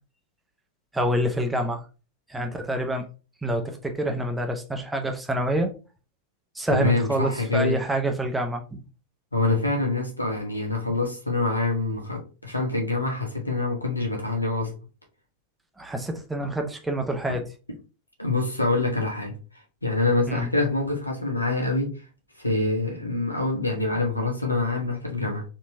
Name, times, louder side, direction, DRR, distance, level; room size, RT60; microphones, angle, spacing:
voice 1, 0.9-1.8 2.3-3.1 3.4-5.7 6.6-8.8 15.8-17.4 20.3-20.5, right 1 dB, 5° right, 0.7 m, -27 dB
voice 2, 6.7-7.8 9.3-14.7 17.3-17.4 18.2-19.4 19.8-21.9 22.4-25.4, left 3 dB, 85° left, 1.1 m, -25 dB
4.3 x 2.9 x 2.6 m
figure-of-eight pair, 90°, 0 cm